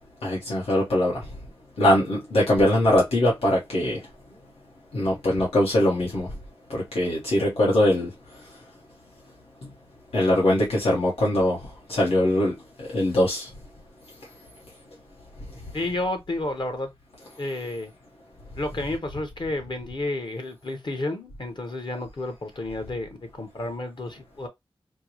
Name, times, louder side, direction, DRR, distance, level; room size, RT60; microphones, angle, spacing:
voice 1, 0.2-1.2 1.8-4.0 4.9-6.3 6.7-8.1 10.1-11.6 11.9-12.5 12.8-13.5, left 1 dB, 80° left, 1.0 m, -22 dB
voice 2, 15.7-16.9 17.4-17.9 18.6-24.5, left 2 dB, 50° left, 1.0 m, -31 dB
4.4 x 2.0 x 2.8 m
wide cardioid pair, 55°, 10 cm